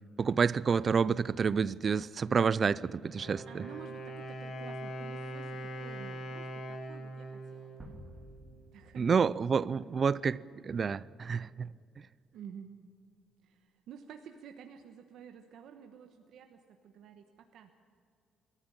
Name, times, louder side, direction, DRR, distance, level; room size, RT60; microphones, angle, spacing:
voice 1, 0.2-3.6 9.0-11.7, right 6 dB, 30° right, 0.4 m, -29 dB
Wind instrument woodwind instrument, 3.0-8.8, right 1 dB, 45° left, 2.6 m, -42 dB
voice 2, 3.4-7.9 8.7-9.2 9.7-9.8 12.3-12.8 13.4-17.7, right 8 dB, 70° right, 1.2 m, -51 dB
sound 1, 7.8-10.7, equal, 10° right, 2.9 m, -53 dB
23.0 x 14.0 x 8.9 m
cardioid pair, 160°, 0 cm